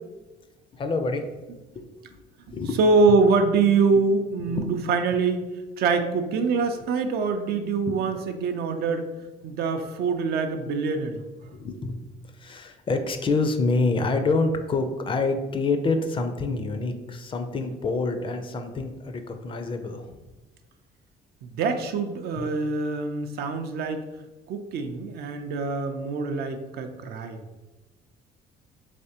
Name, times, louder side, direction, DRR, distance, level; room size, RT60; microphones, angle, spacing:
voice 1, 0.7-1.3 1.8-1.9 2.5-2.8 4.4-4.7 7.9-8.0 11.5-12.0 12.4-20.2 22.4-22.5, left 3 dB, 30° left, 6 dB, 0.4 m, -27 dB
voice 2, 2.5-5.4 5.8-9.1 9.4-11.2 21.4-24.0 24.5-27.4, right 4 dB, 70° right, 7 dB, 0.5 m, -24 dB
3.4 x 3.2 x 2.8 m, 1.1 s
cardioid pair, 110°, 17 cm